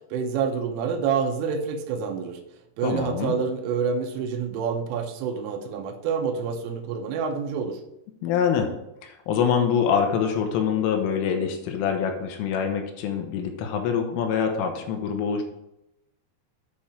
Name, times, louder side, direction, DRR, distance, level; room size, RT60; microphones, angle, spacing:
voice 1, 0.1-2.4 2.8-7.8, right 6 dB, 85° right, 5 dB, 3.4 m, -27 dB
voice 2, 2.8-3.3 8.2-8.7 9.0-15.4, left 7 dB, 85° left, 4 dB, 3.5 m, -25 dB
9.2 x 4.3 x 5.0 m, 0.85 s
omnidirectional pair, 5.6 m